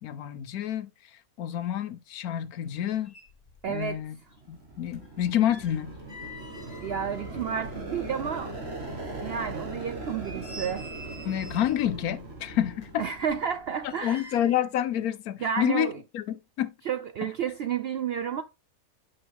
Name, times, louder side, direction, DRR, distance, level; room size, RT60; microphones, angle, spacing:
voice 1, 0.0-3.1 3.7-4.2 4.5-5.9 11.2-13.0 13.8-15.9 16.1-16.7 17.2-17.3, left 11 dB, 85° left, 1.2 m, -29 dB
sound 1, 3.1-4.0 4.3-8.3 8.6-8.7 9.3-9.4 9.9-11.9 12.7-14.7 15.0-15.2, equal, 30° left, 1.5 m, -48 dB
voice 2, 3.6-4.0 6.8-8.5 9.2-10.9 13.0-14.3 15.4-16.0 16.9-18.4, right 7 dB, 70° right, 0.6 m, -31 dB
sound 2, 4.2-14.0, right 2 dB, 45° right, 2.1 m, -40 dB
8.7 x 5.4 x 3.5 m
omnidirectional pair, 1.5 m